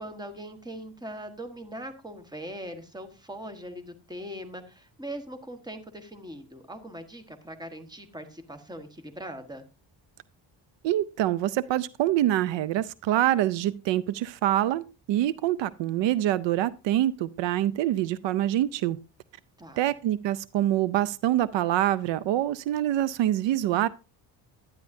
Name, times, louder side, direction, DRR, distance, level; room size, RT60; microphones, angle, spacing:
voice 1, 0.0-9.6 19.6-19.9, right 1 dB, 10° right, 1.3 m, -41 dB
voice 2, 10.8-19.0 19.8-23.9, right 13 dB, 75° right, 0.5 m, -25 dB
11.5 x 9.6 x 2.7 m
cardioid pair, 125°, 45 cm